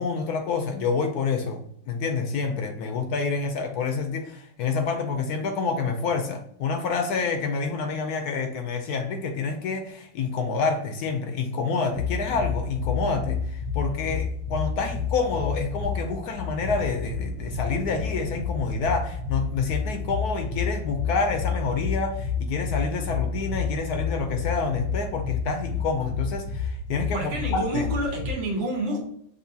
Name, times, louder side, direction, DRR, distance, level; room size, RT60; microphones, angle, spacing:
voice 1, 0.0-1.6 1.9-27.8, left 4 dB, 70° left, 5 dB, 0.9 m, -28 dB
sound 1, 11.9-28.3, left 5 dB, 40° right, 1.2 m, -30 dB
voice 2, 27.1-29.0, right 1 dB, 90° right, 0 dB, 1.9 m, -28 dB
6.5 x 2.7 x 2.7 m, 0.69 s
omnidirectional pair, 2.0 m